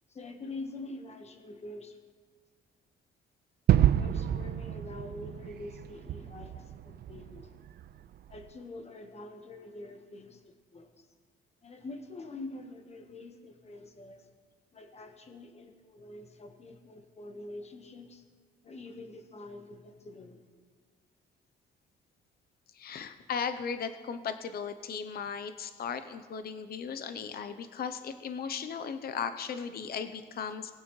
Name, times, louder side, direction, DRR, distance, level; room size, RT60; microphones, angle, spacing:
voice 1, 0.1-2.0 3.9-7.6 8.3-11.1 11.6-14.3 14.7-18.2 18.6-20.4, left 2 dB, 35° left, 5 dB, 1.2 m, -45 dB
Gunshot gunfire / Fireworks / Boom, 3.7-8.5, right 11 dB, 55° right, 0.4 m, -29 dB
voice 2, 22.7-30.7, left 6 dB, 50° left, 10 dB, 0.7 m, -36 dB
20.5 x 8.9 x 3.2 m, 1.5 s
cardioid pair, 90°, 20 cm